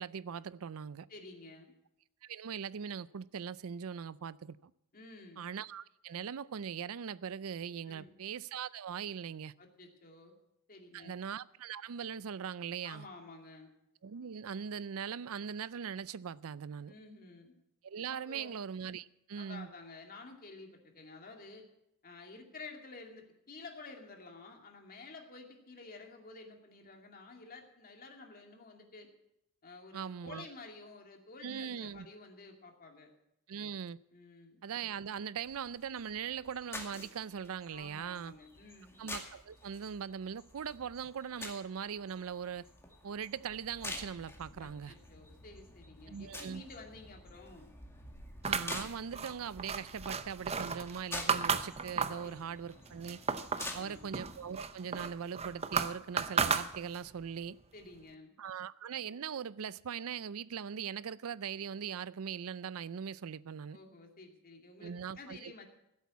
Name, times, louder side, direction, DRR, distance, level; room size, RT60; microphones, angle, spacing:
voice 1, 0.0-1.1 2.2-4.7 5.4-9.5 10.9-13.1 14.0-16.9 17.8-19.7 29.9-30.5 31.4-32.1 33.5-34.0 34.6-38.3 39.0-42.7 43.0-44.9 46.1-46.6 48.4-53.2 53.7-57.6 58.4-63.8 64.8-65.5, right 7 dB, 70° right, 0.5 m, -40 dB
voice 2, 1.1-1.7 4.9-5.4 7.8-8.1 9.6-10.3 10.7-11.1 12.8-13.7 16.9-17.5 18.1-18.6 19.4-21.7 22.0-29.1 29.6-33.1 34.1-34.6 37.7-39.0 44.6-47.7 52.2-52.4 53.5-54.1 57.7-58.3 63.7-65.7, left 3 dB, 40° left, 2.5 m, -51 dB
sound 1, 35.4-54.5, left 2 dB, 10° left, 2.2 m, -48 dB
sound 2, 48.4-52.3 52.7-53.8 54.1-57.2, right 5 dB, 30° right, 0.7 m, -34 dB
15.5 x 8.3 x 8.4 m
head